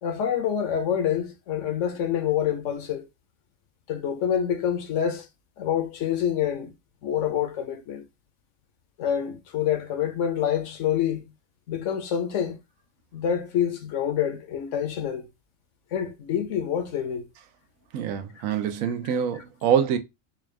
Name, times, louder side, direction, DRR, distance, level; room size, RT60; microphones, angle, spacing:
voice 1, 0.0-3.1 3.9-5.3 5.6-6.7 7.0-8.0 9.0-11.3 11.7-12.6 13.1-15.3 15.9-17.3 19.3-19.4, left 9 dB, 70° left, 1.1 m, -27 dB
voice 2, 17.9-20.0, right 8 dB, 85° right, 1.0 m, -25 dB
4.3 x 2.4 x 3.2 m
omnidirectional pair, 1.4 m